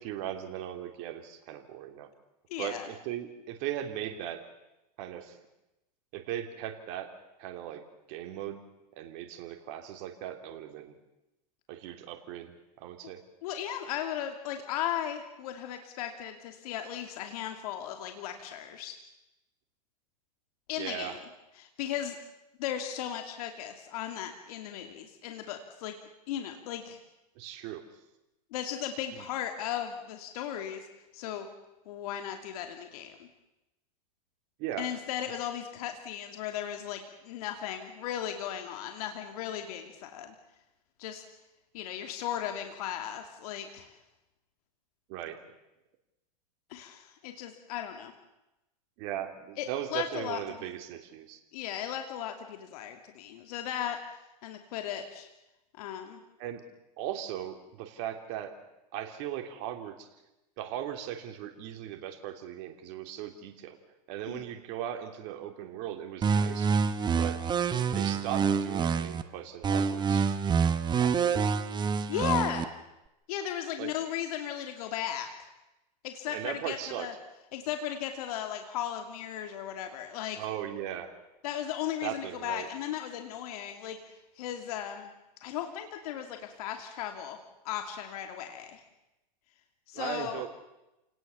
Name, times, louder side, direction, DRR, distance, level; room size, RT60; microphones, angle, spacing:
voice 1, 0.0-2.1 2.6-4.4 5.0-5.3 6.1-7.1 7.4-7.8 8.1-8.6 8.9-10.9 11.7-12.5 12.8-13.2 20.8-21.2 27.4-27.8 29.1-29.2 34.6-34.9 35.3-35.4 45.1-45.5 49.0-51.4 56.4-56.6 57.0-58.5 58.9-59.9 60.6-63.8 64.1-66.7 67.2-67.4 67.9-70.4 71.0-71.5 73.8-73.9 76.3-77.1 80.4-81.1 82.0-82.7 89.9-90.5, right 11 dB, 50° right, 5 dB, 3.0 m, -38 dB
voice 2, 2.5-2.9 13.4-18.9 20.7-21.2 21.6-22.2 22.6-26.0 26.3-27.0 28.5-30.9 31.1-31.5 31.9-33.3 34.8-40.3 41.0-41.2 41.7-43.9 46.7-48.1 49.6-50.7 51.5-54.0 54.4-55.3 55.7-56.2 64.3-64.5 72.1-72.7 73.3-75.5 76.0-77.1 77.5-80.4 81.4-84.0 84.4-85.1 85.4-87.4 87.6-88.8 89.9-90.4, left 10 dB, 65° left, 5 dB, 2.6 m, -36 dB
sound 1, 66.2-69.2 69.6-72.6, right 6 dB, 20° right, 1.2 m, -27 dB
28.5 x 19.0 x 7.0 m, 0.94 s
hypercardioid pair, 125°, 21 cm